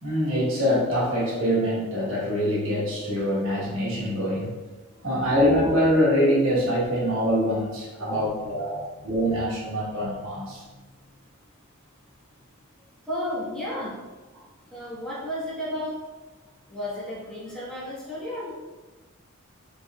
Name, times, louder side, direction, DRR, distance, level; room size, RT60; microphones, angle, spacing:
voice 1, 0.0-4.5 5.0-10.6, equal, 65° right, -6 dB, 1.3 m, -24 dB
voice 2, 4.9-5.3 8.0-9.4 10.0-10.8 13.0-14.0 14.7-16.0 16.7-18.5, left 1 dB, 5° left, -10 dB, 1.2 m, -34 dB
4.0 x 3.7 x 2.4 m, 1.2 s
head